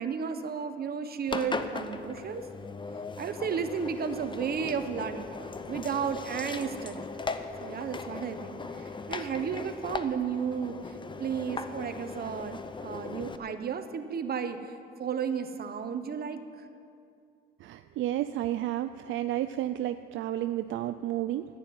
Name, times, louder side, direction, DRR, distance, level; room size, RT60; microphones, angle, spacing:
voice 1, 0.0-2.4 3.2-5.3 5.7-7.1 7.6-10.8 11.2-14.7 15.0-16.4, right 7 dB, 50° right, 9 dB, 1.1 m, -33 dB
Engine, 1.3-13.4, left 4 dB, 25° left, 0.8 m, -38 dB
voice 2, 17.6-21.5, right 13 dB, 75° right, 10 dB, 0.4 m, -31 dB
11.0 x 9.5 x 9.5 m, 2.4 s
cardioid pair, 90°, 20 cm